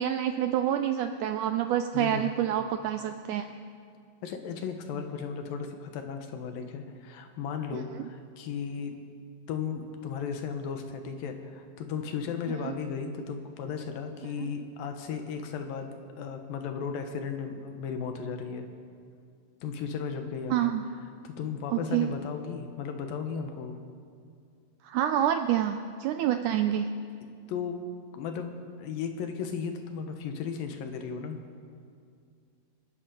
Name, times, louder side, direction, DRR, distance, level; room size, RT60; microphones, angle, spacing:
voice 1, 0.0-3.5 7.7-7.8 12.6-12.7 14.4-14.5 20.5-20.8 21.7-22.1 24.8-26.9, right 10 dB, 80° right, 8 dB, 1.8 m, -27 dB
voice 2, 1.9-2.3 4.2-8.9 9.5-18.7 19.6-20.7 21.2-23.8 27.5-27.9 28.1-31.4, left 6 dB, 80° left, 6 dB, 2.9 m, -35 dB
26.0 x 10.5 x 5.1 m, 2.3 s
omnidirectional pair, 4.1 m